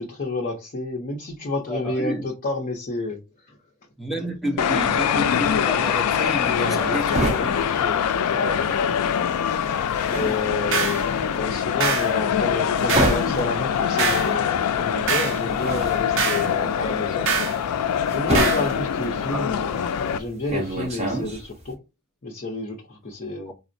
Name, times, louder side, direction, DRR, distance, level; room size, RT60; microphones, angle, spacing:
voice 1, 0.0-3.2 3.5-3.6 6.6-8.0 8.3-8.8 10.1-17.3 18.1-21.8 22.2-23.5, left 3 dB, 40° left, 0.6 m, -30 dB
voice 2, 1.7-2.2 4.0-7.5 19.3-19.5 23.5-23.6, right 1 dB, ahead, 0.6 m, -30 dB
sound 1, 4.6-20.2, left 8 dB, 85° left, 0.3 m, -24 dB
sound 2, 6.3-8.8 9.1-21.7, right 1 dB, 30° right, 1.2 m, -29 dB
sound 3, 10.7-11.0 11.8-12.1 12.9-13.2 14.0-14.3 15.1-15.4 16.2-16.5 17.3-17.6 18.3-18.7, right 6 dB, 60° right, 0.6 m, -24 dB
4.1 x 2.1 x 2.5 m
head